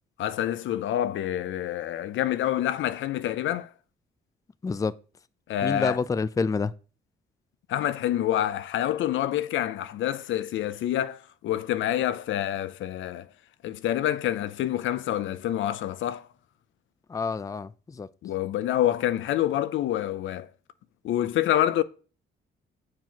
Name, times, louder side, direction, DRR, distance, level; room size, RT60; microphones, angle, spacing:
voice 1, 0.2-3.7 5.5-6.0 7.7-13.3 13.6-16.3 18.2-20.5 21.0-21.8, left 12 dB, 75° left, 0.6 m, -27 dB
voice 2, 5.6-6.7 17.1-18.1, left 4 dB, 15° left, 0.4 m, -28 dB
7.6 x 4.8 x 5.7 m
cardioid pair, 90°, 20 cm